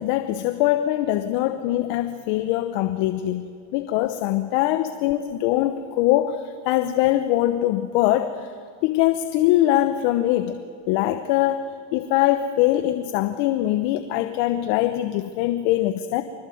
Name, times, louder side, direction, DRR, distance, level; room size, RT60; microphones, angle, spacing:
voice 1, 0.0-8.5 8.8-10.6 10.9-16.2, left 14 dB, 75° left, 9 dB, 1.2 m, -22 dB
25.0 x 21.5 x 7.9 m, 2.1 s
supercardioid pair, 95°, 50 cm